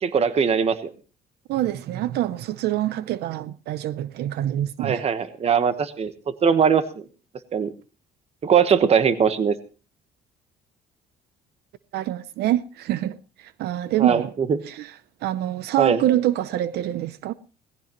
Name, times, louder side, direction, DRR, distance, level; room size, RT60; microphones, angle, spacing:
voice 1, 0.0-0.9 4.8-6.1 6.4-6.8 7.5-7.7 8.4-9.5 14.0-14.6 15.8-16.0, right 7 dB, 35° right, 1.2 m, -20 dB
voice 2, 1.5-5.0 11.9-14.3 14.7-14.9 15.2-17.3, right 13 dB, 75° right, 0.7 m, -25 dB
18.0 x 15.5 x 3.0 m
cardioid pair, 110°, 17 cm